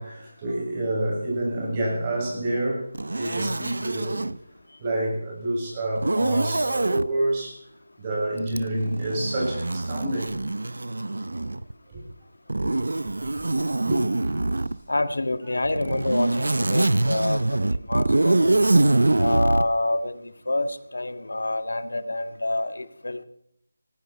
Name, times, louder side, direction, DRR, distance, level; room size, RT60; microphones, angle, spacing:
voice 1, 0.0-2.9 3.1-4.3 4.8-7.6 8.0-10.4 11.9-12.0 12.6-12.7 13.2-14.0 14.3-14.5 15.9-16.0, right 1 dB, 20° right, 6.7 m, -28 dB
Zipper (clothing), 2.9-4.4 6.0-7.1 8.5-11.7 12.5-14.8 15.7-19.7, right 2 dB, 80° right, 0.8 m, -24 dB
voice 2, 14.9-18.5 19.2-20.2 20.5-23.2, left 2 dB, 80° left, 1.7 m, -27 dB
18.5 x 16.0 x 4.3 m
figure-of-eight pair, 170°, 0 cm